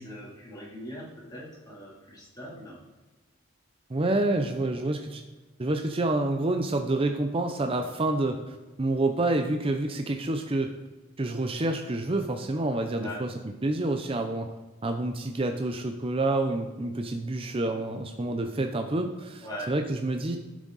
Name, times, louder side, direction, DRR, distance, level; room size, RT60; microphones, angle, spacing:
voice 1, 0.0-2.8 13.0-13.2 19.4-19.7, equal, 20° left, -6 dB, 3.0 m, -41 dB
voice 2, 3.9-5.2 5.6-10.7 11.2-13.3 13.6-14.5 14.8-20.4, right 2 dB, 25° right, 5 dB, 0.5 m, -28 dB
12.0 x 6.2 x 4.0 m, 1.2 s
head